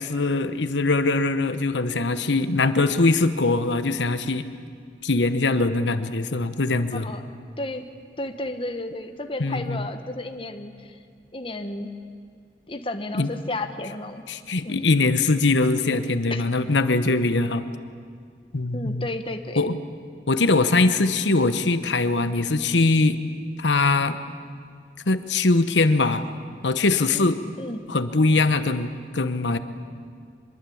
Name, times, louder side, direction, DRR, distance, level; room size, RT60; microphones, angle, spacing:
voice 1, 0.0-4.5 5.0-7.1 9.4-9.8 13.2-13.3 14.3-17.6 18.5-19.0 19.6-19.8 20.3-23.2 23.6-24.2 25.1-26.2 26.6-27.4 27.9-29.6, left 3 dB, 85° left, 11 dB, 1.1 m, -22 dB
voice 2, 6.9-7.3 7.6-7.8 8.2-11.0 11.3-11.9 12.7-14.2 14.6-14.9 16.3-16.5 18.7-19.7 27.1-27.3 27.6-27.8, left 2 dB, 30° left, 7 dB, 1.3 m, -32 dB
24.0 x 22.5 x 8.6 m, 2.1 s
head